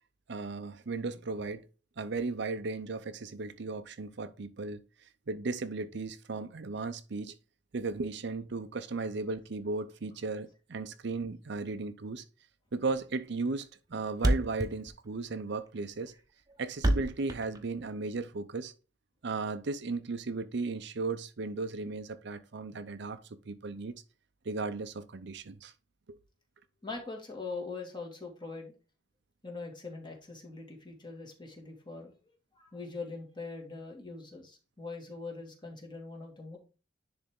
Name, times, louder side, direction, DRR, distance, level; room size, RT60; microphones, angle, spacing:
voice 1, 0.3-1.6 2.0-4.8 5.3-7.3 7.7-12.2 12.7-16.1 16.6-18.7 19.2-23.2 23.4-23.9 24.4-25.7, right 3 dB, 65° right, 0.6 m, -36 dB
Thump thud, 12.8-13.0 13.3-13.4 13.6-13.7 13.9-14.0 14.2-18.2, right 1 dB, 20° right, 0.9 m, -29 dB
voice 2, 26.8-28.7 29.4-32.2 32.6-36.6, left 3 dB, 25° left, 1.9 m, -42 dB
10.0 x 3.5 x 3.6 m
head